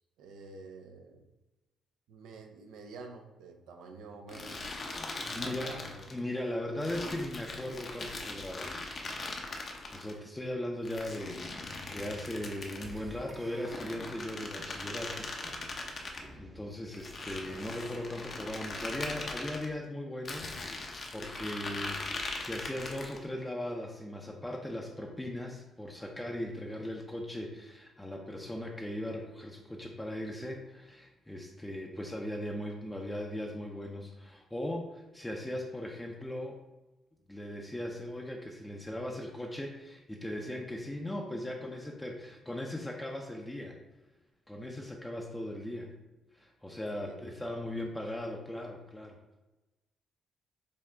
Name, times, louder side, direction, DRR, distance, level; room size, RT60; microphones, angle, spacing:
voice 1, 0.2-1.3 2.1-4.7 5.3-6.0 47.0-47.8, right 3 dB, 90° right, 4 dB, 0.6 m, -49 dB
sound 1, 4.3-6.2 6.8-10.1 10.9-13.0 13.6-16.3 16.9-19.7 20.3-23.2, left 2 dB, 45° left, 0.7 m, -40 dB
voice 2, 4.9-9.1 9.9-15.3 15.9-20.5 20.8-36.6 37.3-43.8 44.5-45.9 46.3-49.2, left 1 dB, 10° left, 0 dB, 0.6 m, -39 dB
sound 2, 12.8-18.6, right 1 dB, 30° right, 0.7 m, -53 dB
5.5 x 2.2 x 3.8 m, 1.0 s
cardioid pair, 90°, 0 cm